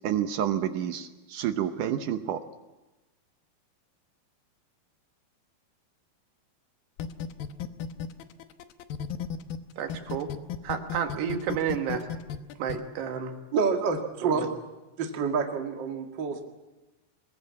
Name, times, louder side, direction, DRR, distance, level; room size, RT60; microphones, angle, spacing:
voice 1, 0.0-2.4, right 10 dB, 70° right, 8 dB, 2.0 m, -29 dB
sound 1, 7.0-9.6 9.9-12.8, left 8 dB, 70° left, 2.6 m, -34 dB
voice 2, 9.8-10.3 10.6-12.1 12.6-13.3 14.2-14.5, right 7 dB, 90° right, 5 dB, 4.0 m, -31 dB
voice 3, 13.5-14.5 15.0-16.4, right 5 dB, 40° right, 3 dB, 1.9 m, -27 dB
23.0 x 21.5 x 8.5 m, 1.1 s
omnidirectional pair, 4.7 m